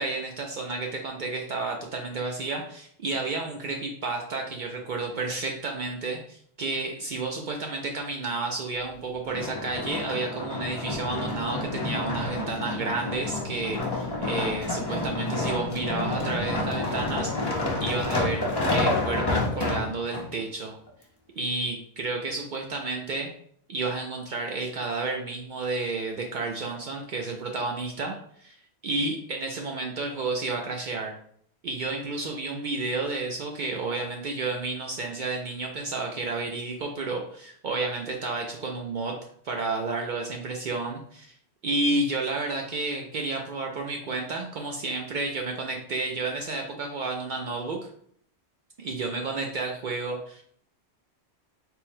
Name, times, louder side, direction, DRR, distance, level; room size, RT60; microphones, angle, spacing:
voice 1, 0.0-18.4 18.7-20.8 21.4-23.3 23.7-28.6 28.8-31.2 31.6-39.1 39.4-41.3 41.6-47.9 48.8-50.4, right 3 dB, 60° right, 1 dB, 0.6 m, -31 dB
sound 1, 9.3-20.3 20.9-21.0, left 2 dB, 25° left, 0.7 m, -29 dB
3.7 x 2.1 x 4.2 m, 0.63 s
omnidirectional pair, 1.1 m